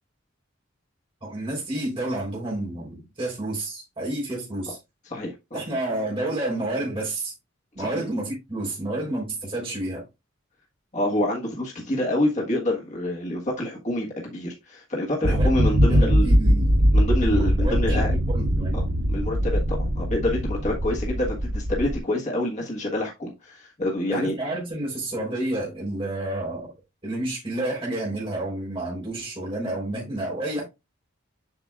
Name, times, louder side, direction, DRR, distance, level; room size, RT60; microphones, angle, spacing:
voice 1, 1.2-4.8 5.5-7.3 7.8-10.0 15.2-15.5 15.9-16.7 17.3-18.8 24.1-26.7 27.0-30.6, right 1 dB, 25° right, 3.7 m, -30 dB
voice 2, 5.1-5.6 7.8-8.0 10.9-16.3 16.9-18.1 18.7-24.3, left 1 dB, 35° left, 1.4 m, -27 dB
sound 1, 15.2-22.0, equal, 60° right, 0.9 m, -21 dB
7.9 x 5.9 x 2.4 m
head